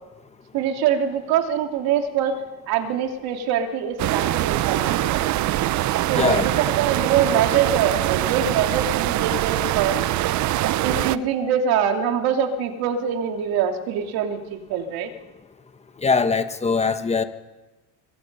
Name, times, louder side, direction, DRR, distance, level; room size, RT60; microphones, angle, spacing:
voice 1, 0.5-2.4 2.7-5.2 6.0-10.0 10.8-15.1, right 8 dB, 65° right, 4 dB, 2.9 m, -24 dB
sound 1, 4.0-11.2, right 15 dB, 45° right, 0.7 m, -23 dB
voice 2, 16.0-17.2, left 4 dB, 15° left, 9 dB, 1.3 m, -21 dB
25.5 x 23.0 x 5.5 m, 1.1 s
cardioid pair, 135°, 40 cm